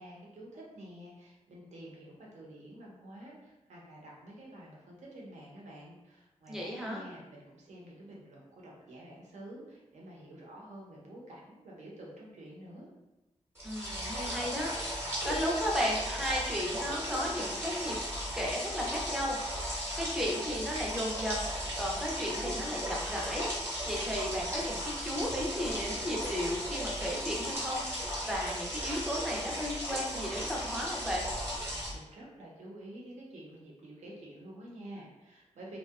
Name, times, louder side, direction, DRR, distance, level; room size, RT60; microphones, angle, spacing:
voice 1, 0.0-12.9 31.9-35.8, right 1 dB, 70° right, -3 dB, 0.7 m, -49 dB
voice 2, 6.5-7.0 13.6-18.0 18.3-31.3, equal, 5° right, -3 dB, 0.4 m, -35 dB
sound 1, 13.6-31.9, equal, 20° right, 0.8 m, -36 dB
2.6 x 2.1 x 2.3 m, 1.0 s
wide cardioid pair, 160°, 12 cm